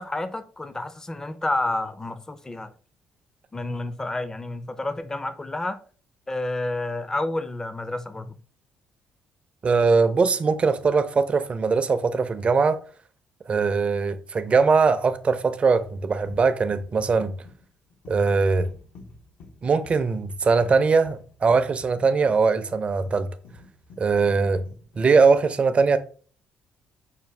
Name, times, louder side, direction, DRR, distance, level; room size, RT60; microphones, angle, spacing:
voice 1, 0.0-2.7 3.5-5.8 6.3-8.4, left 2 dB, 20° left, 0.4 m, -30 dB
voice 2, 9.6-12.8 13.5-17.4 18.1-18.7 19.6-23.3 24.0-24.6 25.0-26.0, right 4 dB, 40° right, 0.5 m, -21 dB
sound 1, 15.8-25.4, left 2 dB, 75° left, 0.8 m, -48 dB
5.6 x 2.2 x 3.2 m
supercardioid pair, 75°, 3 cm